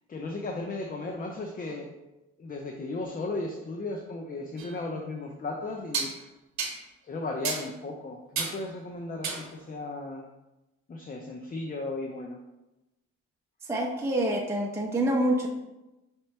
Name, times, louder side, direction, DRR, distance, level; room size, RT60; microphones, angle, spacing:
voice 1, 0.1-1.9 2.4-6.3 7.0-10.3 10.9-12.4, left 2 dB, 30° left, 2 dB, 0.5 m, -35 dB
sound 1, 4.6-4.7 5.9-6.2 6.6-6.8 7.4-7.7 8.4-8.6 9.2-9.5, right 5 dB, 65° right, 1.0 m, -31 dB
voice 2, 13.6-15.5, right 1 dB, 10° right, -2 dB, 0.7 m, -26 dB
5.5 x 2.9 x 3.2 m, 0.99 s
cardioid pair, 90°, 30 cm